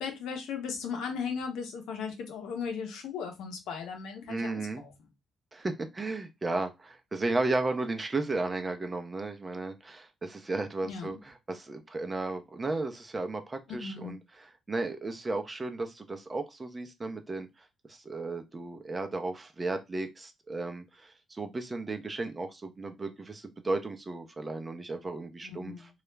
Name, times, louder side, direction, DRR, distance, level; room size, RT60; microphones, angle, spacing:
voice 1, 0.0-4.9 10.8-11.2 13.8-14.2 25.4-25.8, left 6 dB, 85° left, 0.7 m, -37 dB
voice 2, 4.3-4.8 5.5-17.5 17.9-26.0, right 2 dB, 25° right, 0.5 m, -34 dB
2.3 x 2.0 x 3.1 m
cardioid pair, 90°, 0 cm